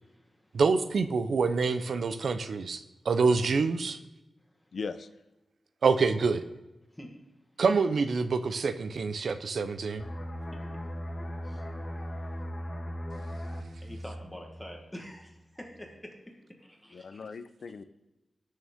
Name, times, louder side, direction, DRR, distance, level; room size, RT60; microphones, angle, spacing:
voice 1, 0.0-0.5 6.9-7.1 10.5-10.6 11.4-11.7 13.8-16.1 16.6-17.3, equal, 5° left, 0 dB, 1.3 m, -46 dB
voice 2, 0.5-4.0 5.8-6.4 7.6-10.0, right 4 dB, 70° right, 10 dB, 0.6 m, -26 dB
voice 3, 4.7-5.1 16.9-17.8, left 5 dB, 60° left, 11 dB, 0.6 m, -38 dB
sound 1, 10.0-15.4 15.7-15.9, equal, 25° left, 1.4 m, -38 dB
19.0 x 6.5 x 3.6 m, 1.0 s
wide cardioid pair, 165°, 0 cm